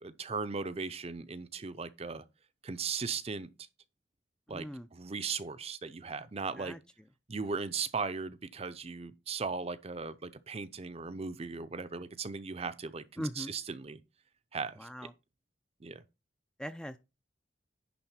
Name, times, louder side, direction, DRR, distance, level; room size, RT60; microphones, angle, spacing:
voice 1, 0.0-2.2 2.6-3.5 4.5-4.6 4.9-6.8 7.3-14.0 14.5-14.9 15.8-16.0, right 5 dB, 35° right, 0.6 m, -37 dB
voice 2, 4.5-4.9 6.5-6.8 13.2-13.5 14.8-15.1 16.6-17.0, equal, 5° left, 0.4 m, -40 dB
10.5 x 3.6 x 5.7 m
head